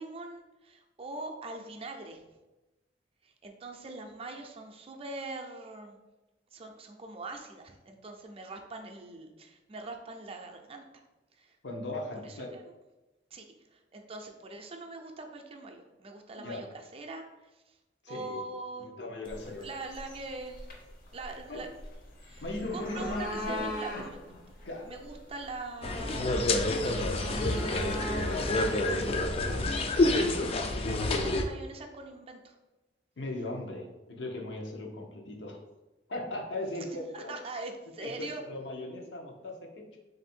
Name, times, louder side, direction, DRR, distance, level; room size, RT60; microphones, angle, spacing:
voice 1, 0.0-2.2 3.2-6.0 6.5-11.0 11.3-11.6 12.2-12.7 13.3-13.5 13.7-17.8 18.1-18.9 19.6-20.6 21.1-21.7 22.2-22.4 22.7-24.3 24.9-26.4 26.7-28.4 30.8-32.6 37.1-38.4, right 3 dB, 35° right, 3 dB, 0.4 m, -43 dB
voice 2, 11.6-12.6 16.4-16.6 18.0-18.4 18.8-19.7 21.5-21.6 22.4-23.6 24.6-24.9 29.0-30.2 30.8-31.5 33.2-35.6 36.1-37.3 38.0-40.0, left 2 dB, 85° left, 1 dB, 0.8 m, -38 dB
sound 1, 19.3-30.1, left 1 dB, 55° left, 0.7 m, -41 dB
village calm short movement voices Putti Uganda MS, 25.8-31.4, left 2 dB, 35° left, 0.3 m, -28 dB
3.4 x 2.6 x 4.2 m, 1.1 s
head